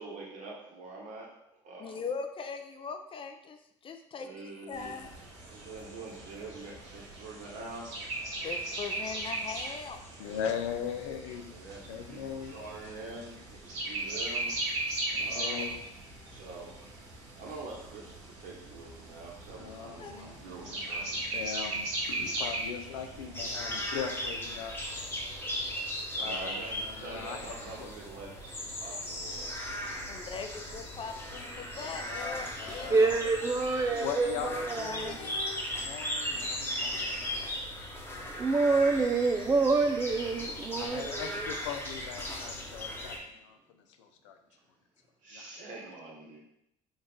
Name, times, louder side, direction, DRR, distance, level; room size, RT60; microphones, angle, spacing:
voice 1, 0.0-1.3 1.6-2.1 4.2-5.1 5.5-8.0 11.5-14.9 15.2-15.7 16.3-17.1 17.3-21.1 26.1-30.0 45.2-46.4, right 3 dB, 60° right, -2 dB, 1.3 m, -45 dB
voice 2, 1.8-3.6 3.8-5.1 8.4-10.0 10.3-10.4 20.0-20.2 30.1-33.2 34.8-35.7, left 5 dB, 35° left, 6 dB, 0.5 m, -40 dB
sound 1, 4.7-23.5, right 2 dB, 80° right, 1.1 m, -38 dB
voice 3, 10.2-11.4 11.8-12.6 15.1-15.8 19.6-24.8 25.2-25.4 26.2-27.5 27.8-27.9 31.8-33.2 33.9-35.3 35.8-37.3 40.8-44.4 45.3-45.6, left 8 dB, 85° left, 6 dB, 0.5 m, -40 dB
sound 2, 23.3-43.2, left 1 dB, 15° left, 1.0 m, -37 dB
voice 4, 32.9-35.2 38.4-41.5, right 3 dB, 20° right, 5 dB, 0.3 m, -27 dB
3.9 x 2.4 x 3.7 m, 0.80 s
hypercardioid pair, 65°, 15 cm